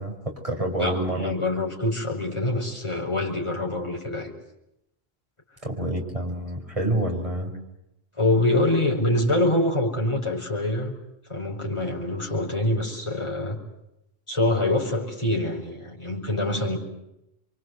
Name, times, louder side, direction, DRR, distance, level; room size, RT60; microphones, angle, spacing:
voice 1, 0.0-1.3 5.6-7.5, right 1 dB, 30° right, 2 dB, 5.4 m, -28 dB
voice 2, 0.8-4.3 8.2-10.9 11.3-13.6 14.3-16.8, left 1 dB, 30° left, -3 dB, 5.3 m, -25 dB
28.0 x 24.0 x 8.0 m, 0.86 s
omnidirectional pair, 1.0 m